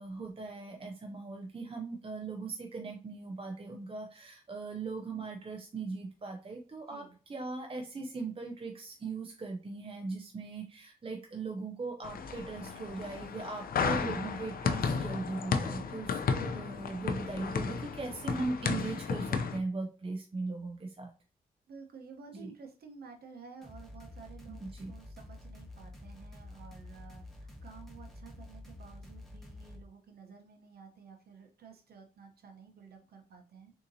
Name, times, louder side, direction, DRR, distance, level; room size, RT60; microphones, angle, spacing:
voice 1, 0.0-21.1 22.3-22.5 24.5-24.9, right 3 dB, 35° right, 3 dB, 0.6 m, -39 dB
sound 1, 12.0-19.6, left 5 dB, 70° left, 0.5 m, -33 dB
voice 2, 21.7-33.7, right 5 dB, 80° right, 4 dB, 0.8 m, -52 dB
sound 2, 23.6-29.8, left 2 dB, ahead, 1.1 m, -49 dB
3.7 x 2.8 x 2.7 m, 0.38 s
cardioid pair, 65°, 16 cm